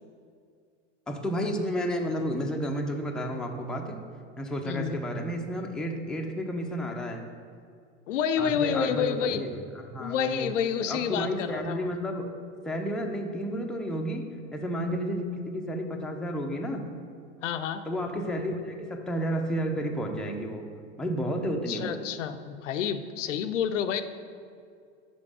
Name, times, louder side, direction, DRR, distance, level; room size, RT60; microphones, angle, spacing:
voice 1, 1.1-4.0 4.4-7.2 8.4-10.5 10.9-12.3 12.6-14.3 14.5-16.9 17.9-20.6 21.0-22.0, equal, ahead, 1 dB, 0.5 m, -31 dB
voice 2, 4.6-5.0 8.1-9.4 10.0-11.9 17.4-17.8 21.7-24.0, left 8 dB, 85° left, 9 dB, 0.5 m, -29 dB
5.3 x 5.2 x 4.8 m, 2.3 s
hypercardioid pair, 95°, 36 cm